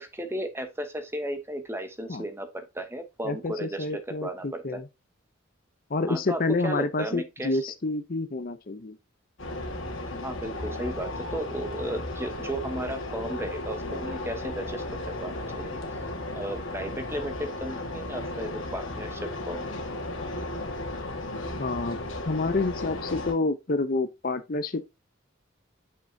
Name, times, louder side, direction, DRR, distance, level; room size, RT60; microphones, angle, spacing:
voice 1, 0.0-4.8 6.1-7.6 10.2-15.8 16.3-19.6, right 1 dB, 10° right, 1.0 m, -35 dB
voice 2, 3.2-4.8 5.9-9.0 21.6-22.0 22.3-25.0, left 3 dB, 45° left, 0.6 m, -28 dB
sound 1, 9.4-23.3, left 2 dB, 70° left, 1.6 m, -35 dB
6.6 x 6.0 x 2.7 m
head